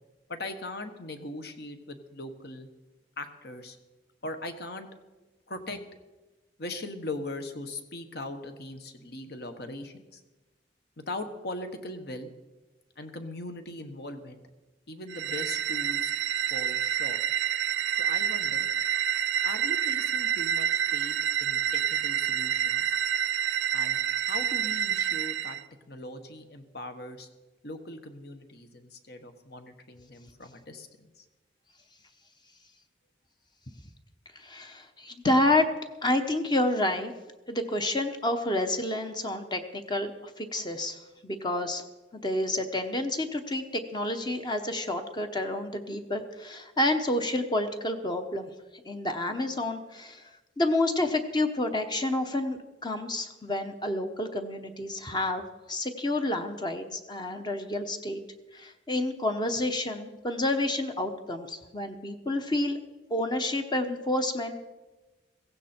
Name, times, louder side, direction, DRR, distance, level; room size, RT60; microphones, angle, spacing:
voice 1, 0.3-2.7 3.2-3.8 4.2-4.9 5.5-5.8 6.6-10.2 11.0-12.3 13.0-14.4 14.9-16.1 16.5-17.2 17.9-18.7 19.4-22.9 23.7-25.6 25.9-27.3 27.6-31.2 35.2-35.4, left 2 dB, 55° left, 7 dB, 1.3 m, -40 dB
sound 1, 15.1-25.6, right 9 dB, 70° right, 0.5 m, -28 dB
voice 2, 34.3-35.6 36.0-37.1 37.5-41.8 42.1-48.5 48.8-50.3 50.6-55.4 55.7-58.2 58.5-62.8 63.1-64.6, left 1 dB, 25° left, 6 dB, 0.9 m, -29 dB
16.0 x 16.0 x 4.4 m, 1.1 s
head